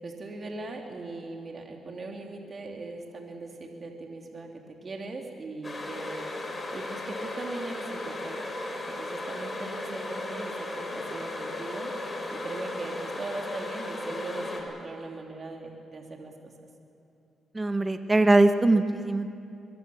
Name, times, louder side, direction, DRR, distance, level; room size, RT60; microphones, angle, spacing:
voice 1, 0.0-8.4 9.0-16.3, right 2 dB, 40° right, 1 dB, 2.7 m, -40 dB
sound 1, 5.6-14.6, left 2 dB, 30° left, 5.1 m, -36 dB
voice 2, 17.5-19.3, right 2 dB, 20° right, 8 dB, 1.1 m, -21 dB
23.0 x 22.5 x 7.0 m, 2.8 s
cardioid pair, 85°, 0 cm